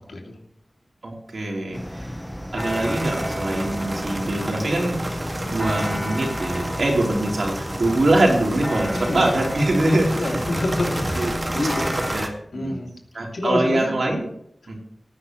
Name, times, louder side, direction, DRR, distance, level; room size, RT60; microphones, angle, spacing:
voice 1, 1.0-2.1 2.5-10.4 11.1-11.7 12.1-12.7 13.1-14.3 14.7-14.8, right 1 dB, 75° right, -1 dB, 3.8 m, -23 dB
sound 1, 1.7-12.2, equal, 5° left, 1.1 m, -32 dB
sound 2, 2.6-12.3, right 1 dB, 30° right, 2.1 m, -31 dB
voice 2, 8.9-9.3 9.9-12.0 12.5-12.9 13.3-13.9, left 2 dB, 80° left, 1 dB, 2.8 m, -28 dB
18.5 x 9.8 x 3.2 m, 0.67 s
wide cardioid pair, 70°, 0 cm